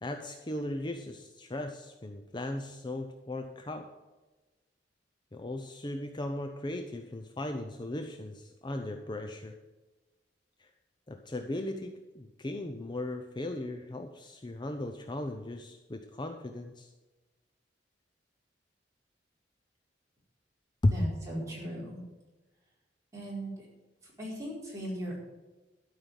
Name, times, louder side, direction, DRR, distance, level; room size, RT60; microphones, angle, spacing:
voice 1, 0.0-3.9 5.3-9.6 10.6-10.7 11.1-16.9 20.8-21.1, left 1 dB, 25° left, 6 dB, 0.6 m, -36 dB
voice 2, 20.9-22.0 23.1-23.5 24.2-25.2, equal, 15° right, -6 dB, 4.6 m, -37 dB
12.5 x 5.6 x 8.9 m, 1.2 s
head